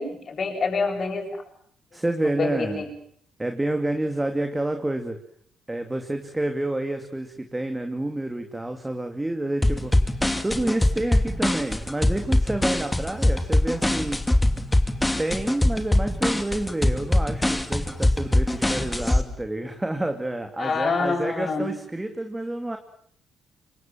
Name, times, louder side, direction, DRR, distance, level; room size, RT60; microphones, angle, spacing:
voice 1, 0.0-1.4 2.4-2.9 20.6-21.7, left 4 dB, 45° left, 2 dB, 7.9 m, -26 dB
voice 2, 1.9-2.8 3.4-5.2 5.7-9.9 10.4-14.2 15.2-22.8, right 1 dB, 10° right, 5 dB, 2.6 m, -28 dB
sound 1, 9.6-19.2, left 1 dB, 10° left, 2.7 m, -22 dB
26.5 x 24.0 x 7.6 m, 0.64 s
cardioid pair, 90°, 0 cm